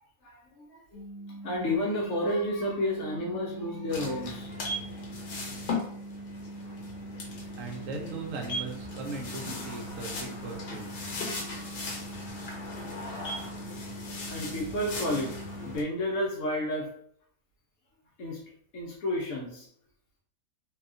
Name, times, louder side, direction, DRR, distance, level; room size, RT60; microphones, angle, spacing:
voice 1, 0.2-1.0 1.4-4.7 14.2-15.4 15.6-16.9 18.2-18.4 18.7-19.7, left 1 dB, 65° left, -1 dB, 0.9 m, -31 dB
sound 1, 0.9-15.8, right 2 dB, 40° left, 0.6 m, -43 dB
sound 2, 3.9-15.8, left 2 dB, 85° left, 1.1 m, -38 dB
voice 2, 7.6-10.9, right 3 dB, 70° right, 1 dB, 0.9 m, -39 dB
2.7 x 2.2 x 2.5 m, 0.64 s
omnidirectional pair, 1.5 m